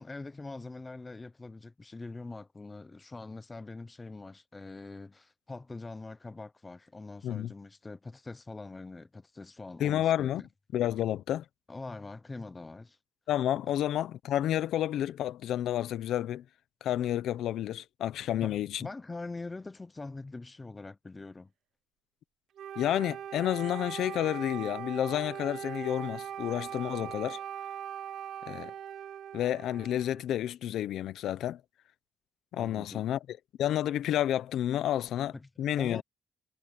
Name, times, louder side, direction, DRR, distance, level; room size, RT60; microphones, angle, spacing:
voice 1, 0.0-10.5 11.7-13.0 13.6-13.7 18.4-21.5 29.8-29.9 32.6-33.1 35.3-35.5 35.8-36.0, left 3 dB, 15° left, 0.6 m, -43 dB
voice 2, 9.8-10.4 10.7-11.4 13.3-16.4 16.8-18.9 22.8-27.4 28.5-28.7 29.3-31.6 32.5-36.0, left 12 dB, 75° left, 0.8 m, -30 dB
Wind instrument woodwind instrument, 22.6-30.3, right 9 dB, 65° right, 0.7 m, -40 dB
cardioid pair, 170°, 0 cm